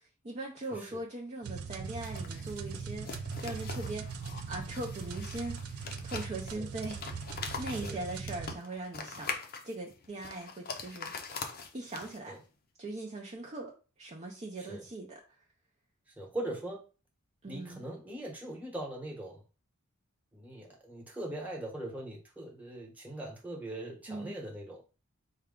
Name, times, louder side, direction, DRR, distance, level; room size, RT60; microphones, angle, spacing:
voice 1, 0.0-3.1 3.4-4.1 4.5-5.6 6.0-7.0 7.6-9.3 9.6-11.1 11.7-12.4 12.8-15.2 17.4-17.8 24.1-24.3, right 2 dB, 30° right, 0.6 m, -40 dB
sound 1, 1.4-8.6, right 5 dB, 85° right, 0.4 m, -40 dB
sound 2, 1.8-12.4, left 5 dB, 45° left, 0.6 m, -43 dB
voice 2, 16.2-16.8 17.4-19.4 20.3-24.8, right 1 dB, 5° right, 1.1 m, -41 dB
4.6 x 2.3 x 3.7 m
head